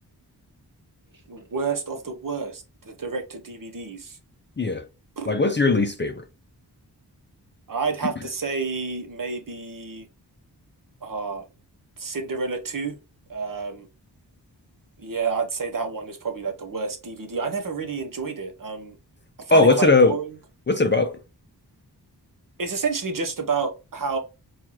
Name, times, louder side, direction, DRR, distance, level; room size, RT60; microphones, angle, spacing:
voice 1, 1.3-4.2 5.2-5.3 7.7-10.1 11.0-11.5 12.0-13.0 13.3-13.9 15.0-18.9 19.4-20.4 22.6-24.2, right 4 dB, 50° right, 0.9 m, -29 dB
voice 2, 5.3-6.2 19.5-20.1 20.7-21.2, left 3 dB, 25° left, 0.5 m, -19 dB
4.4 x 2.4 x 2.9 m
wide cardioid pair, 50°, 42 cm